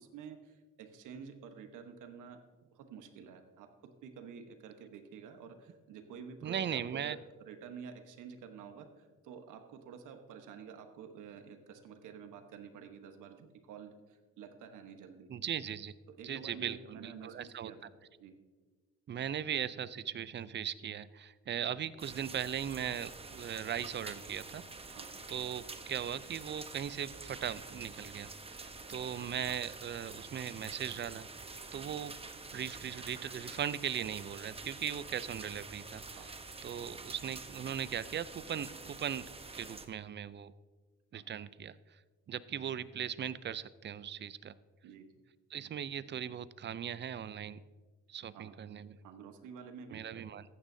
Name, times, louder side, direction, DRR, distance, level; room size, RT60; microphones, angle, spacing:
voice 1, 0.0-2.4 2.7-15.3 16.1-17.9 18.2-18.3 24.9-25.1 36.2-36.3 41.1-41.2 44.8-45.1 48.3-48.6 49.0-50.2, right 6 dB, 85° right, 6 dB, 1.2 m, -50 dB
voice 2, 6.4-7.2 15.3-15.9 16.2-17.7 19.1-25.0 25.3-31.3 31.7-32.2 32.5-36.4 36.6-40.5 41.1-41.8 42.3-44.5 45.5-47.6 48.1-49.0 49.9-50.4, right 9 dB, 35° right, 16 dB, 0.5 m, -39 dB
sound 1, 22.0-39.9, right 3 dB, 20° right, 0.9 m, -47 dB
14.5 x 9.7 x 2.7 m, 1.3 s
cardioid pair, 90°, 30 cm